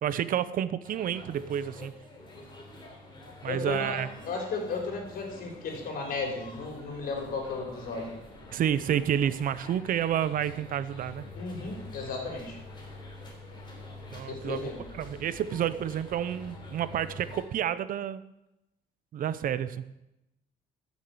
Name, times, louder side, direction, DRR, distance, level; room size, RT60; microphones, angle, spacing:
voice 1, 0.0-1.9 3.4-4.1 8.5-11.2 14.1-18.2 19.1-19.8, right 10 dB, 55° right, 15 dB, 0.8 m, -30 dB
sound 1, 0.8-17.4, left 2 dB, 25° left, 3.6 m, -47 dB
voice 2, 3.4-8.2 11.3-12.6 14.2-14.8, left 4 dB, 60° left, 1 dB, 4.3 m, -35 dB
13.0 x 7.2 x 7.9 m, 0.92 s
cardioid pair, 110°, 17 cm